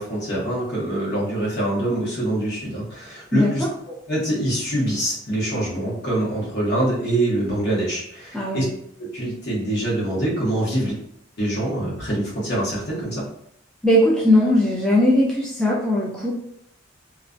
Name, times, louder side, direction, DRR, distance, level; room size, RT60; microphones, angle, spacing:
voice 1, 0.0-3.6 4.1-8.6 9.0-11.0 11.4-13.2, right 1 dB, 55° left, -5 dB, 0.9 m, -24 dB
voice 2, 3.3-3.7 8.3-8.6 13.8-16.3, left 1 dB, 5° left, -5 dB, 0.3 m, -19 dB
2.3 x 2.1 x 2.4 m, 0.72 s
head